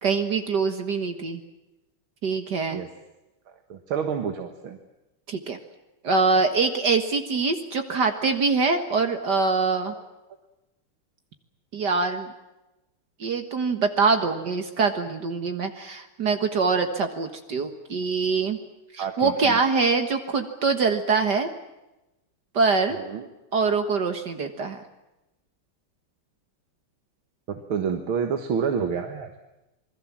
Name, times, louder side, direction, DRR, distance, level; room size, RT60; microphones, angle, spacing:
voice 1, 0.0-1.4 2.2-2.8 5.3-5.6 6.0-9.9 11.7-12.3 13.2-18.6 18.9-21.5 22.5-23.0 23.5-24.8, right 4 dB, 55° right, 7 dB, 2.0 m, -24 dB
voice 2, 3.5-4.8 19.0-19.6 22.9-23.3 27.5-29.3, right 7 dB, 75° right, 5 dB, 2.3 m, -29 dB
27.0 x 21.5 x 7.4 m, 0.97 s
omnidirectional pair, 2.3 m